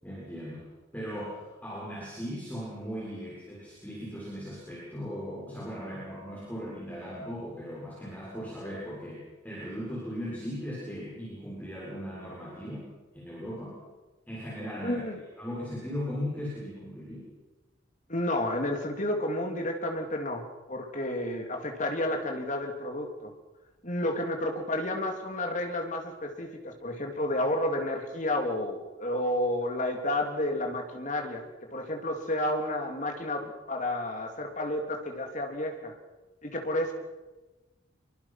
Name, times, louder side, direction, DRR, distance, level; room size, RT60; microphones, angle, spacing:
voice 1, 0.0-13.8 14.3-15.0 15.4-17.3, equal, 10° left, -7 dB, 7.0 m, -38 dB
voice 2, 14.8-15.2 18.1-23.3 23.8-31.4 31.7-35.9 36.4-36.9, left 1 dB, 35° left, 3 dB, 3.3 m, -31 dB
26.5 x 23.5 x 6.1 m, 1.2 s
head